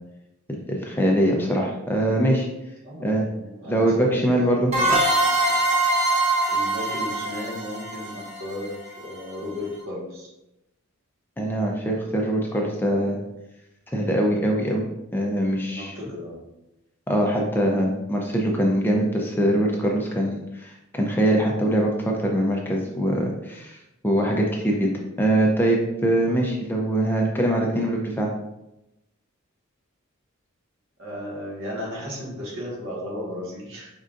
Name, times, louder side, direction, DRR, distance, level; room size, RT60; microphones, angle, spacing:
voice 1, 0.5-2.5 3.0-3.2 3.7-4.7 11.4-13.2 13.9-15.9 17.1-23.8 24.0-24.9 25.2-28.3, right 1 dB, 10° left, 0 dB, 0.5 m, -23 dB
voice 2, 2.8-5.0 6.5-10.3 15.7-16.4 31.0-33.9, left 1 dB, 65° right, -5 dB, 1.6 m, -34 dB
sound 1, 4.7-9.2, right 2 dB, 30° right, 1.2 m, -23 dB
5.4 x 3.7 x 2.5 m, 0.91 s
head